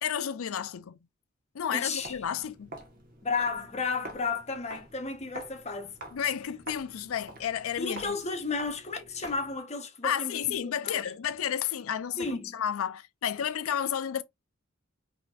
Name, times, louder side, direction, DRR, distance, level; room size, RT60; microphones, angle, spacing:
voice 1, 0.0-1.0 1.5-2.7 6.1-8.2 10.0-14.2, left 9 dB, 90° left, 0.4 m, -31 dB
voice 2, 1.7-2.2 3.2-5.9 7.8-11.1 12.2-12.5, left 4 dB, 35° left, 0.9 m, -33 dB
Walk footsteps, 2.0-9.6, right 1 dB, 45° right, 1.2 m, -47 dB
5.2 x 2.8 x 2.3 m
head